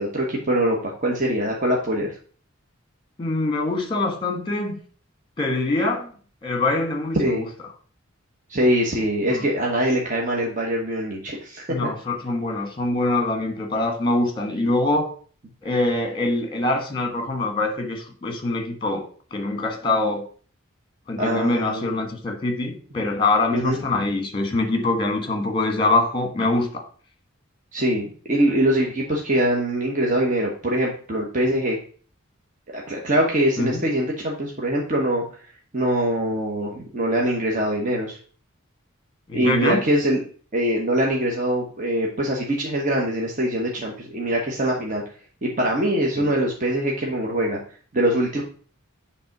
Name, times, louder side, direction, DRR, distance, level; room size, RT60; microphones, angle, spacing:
voice 1, 0.0-2.1 7.1-7.4 8.5-11.6 21.2-21.9 23.5-23.8 27.7-31.8 32.7-35.2 35.7-38.2 39.3-40.2 40.5-45.0 45.4-47.6 47.9-48.4, right 1 dB, 35° right, -2 dB, 1.2 m, -23 dB
voice 2, 3.2-4.8 5.4-6.1 6.4-7.5 9.3-9.4 11.7-15.1 15.6-20.3 21.1-26.8 33.6-33.8 39.3-39.8 46.2-46.3, left 2 dB, 25° left, 4 dB, 1.3 m, -24 dB
7.9 x 3.5 x 5.9 m, 0.44 s
head